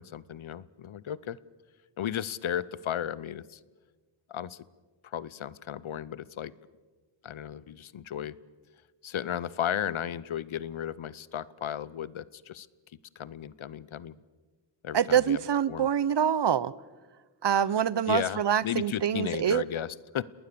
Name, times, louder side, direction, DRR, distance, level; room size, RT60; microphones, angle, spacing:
voice 1, 0.0-1.4 2.0-3.6 4.3-4.6 5.0-6.5 7.2-8.4 9.0-12.7 13.2-14.2 14.8-15.4 15.7-15.9 18.1-20.2, left 10 dB, 80° left, 20 dB, 0.8 m, -34 dB
voice 2, 14.9-16.7 17.4-19.6, right 9 dB, 60° right, 20 dB, 0.8 m, -25 dB
29.5 x 20.0 x 6.9 m, 1.3 s
cardioid pair, 60°, 48 cm